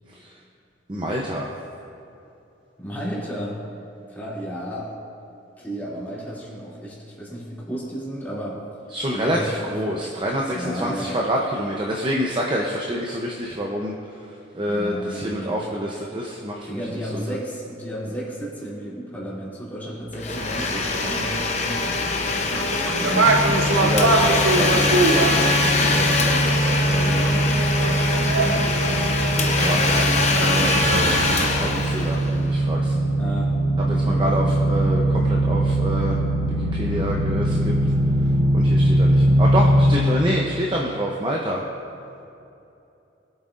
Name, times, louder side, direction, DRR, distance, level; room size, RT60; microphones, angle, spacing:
voice 1, 0.9-1.5 8.9-13.9 14.5-16.8 17.1-17.2 23.7-26.2 26.8-27.2 28.0-28.2 29.4-31.2 31.5-32.9 33.9-36.2 36.7-37.7 38.5-41.6, equal, 25° right, -2 dB, 0.7 m, -27 dB
voice 2, 2.8-3.6 4.1-5.0 5.6-8.7 9.1-10.1 10.5-11.2 14.7-15.7 16.6-23.6 33.2-34.3, equal, 10° left, -8 dB, 2.6 m, -33 dB
Domestic sounds home sounds, 20.1-32.7, left 3 dB, 35° left, 0.8 m, -24 dB
sound 1, 20.4-31.5, right 3 dB, 80° right, 0.8 m, -24 dB
sound 2, 23.2-40.0, right 1 dB, 50° right, 1.2 m, -22 dB
21.5 x 8.0 x 2.5 m, 2.8 s
head